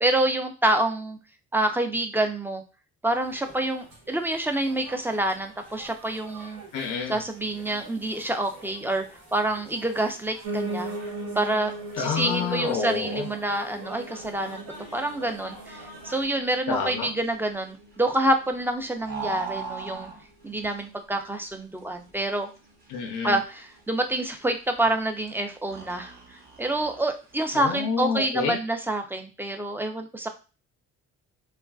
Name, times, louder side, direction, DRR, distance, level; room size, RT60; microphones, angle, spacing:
voice 1, 0.0-1.2 1.5-2.6 3.0-6.6 7.1-9.0 9.3-10.9 11.4-11.7 12.0-14.6 14.9-20.1 20.4-22.5 23.2-30.3, right 1 dB, 5° right, 6 dB, 0.4 m, -27 dB
sound 1, 3.1-16.2, right 2 dB, 90° right, 1.3 m, -47 dB
voice 2, 6.7-7.2 12.0-13.3 16.7-17.1 22.9-23.4 27.5-28.6, left 6 dB, 90° left, 1 dB, 0.6 m, -28 dB
Piano, 10.4-19.5 19.9-21.1 21.4-21.5 21.7-21.8 22.1-22.2 22.7-22.8, right 2 dB, 70° right, 0.7 m, -39 dB
sound 2, 14.2-27.6, right 5 dB, 30° right, 1.0 m, -42 dB
3.1 x 2.4 x 2.3 m, 0.32 s
cardioid pair, 90°, 30 cm